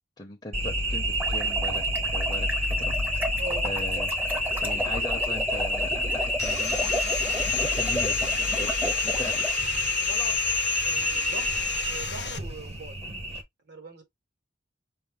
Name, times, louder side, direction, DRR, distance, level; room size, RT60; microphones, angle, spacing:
voice 1, 0.2-2.9 3.6-4.1 4.6-6.8 7.5-9.5, left 2 dB, 25° left, 0.7 m, -39 dB
sound 1, 0.5-13.4, equal, 35° right, 1.0 m, -28 dB
sound 2, 1.0-9.5, equal, 10° right, 0.7 m, -34 dB
voice 2, 3.4-3.7 10.0-10.4 10.8-11.5 11.8-13.0 13.7-14.0, right 2 dB, 65° right, 1.5 m, -40 dB
Sawing, 6.4-12.4, left 7 dB, 65° left, 0.7 m, -32 dB
5.4 x 2.1 x 3.6 m
head